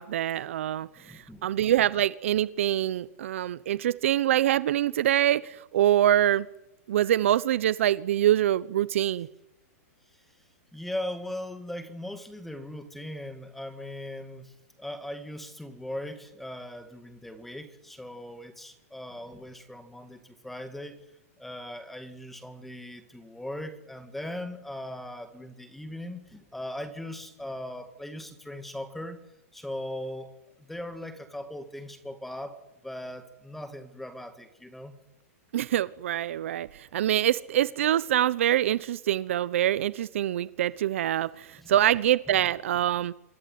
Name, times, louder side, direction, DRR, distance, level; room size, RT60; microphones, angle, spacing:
voice 1, 0.0-6.5 6.9-9.3 35.5-43.1, right 12 dB, 55° right, 17 dB, 1.0 m, -25 dB
voice 2, 1.0-1.5 10.7-21.0 21.4-29.2 29.5-35.0 41.6-41.7 42.3-42.4, left 1 dB, ahead, 9 dB, 2.1 m, -39 dB
27.0 x 23.0 x 9.5 m, 0.89 s
hypercardioid pair, 170°, 8 cm